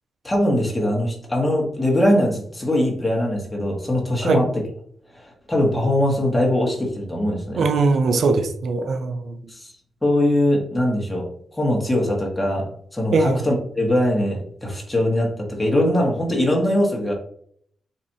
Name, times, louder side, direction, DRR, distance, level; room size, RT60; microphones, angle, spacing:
voice 1, 0.2-4.5 5.1-7.7 9.5-9.7 10.0-11.3 11.6-17.1, left 1 dB, 10° left, -2 dB, 1.5 m, -21 dB
voice 2, 7.5-9.3 13.1-13.4, right 3 dB, 70° right, 6 dB, 0.5 m, -20 dB
4.4 x 3.1 x 2.7 m, 0.62 s
cardioid pair, 80°, 0 cm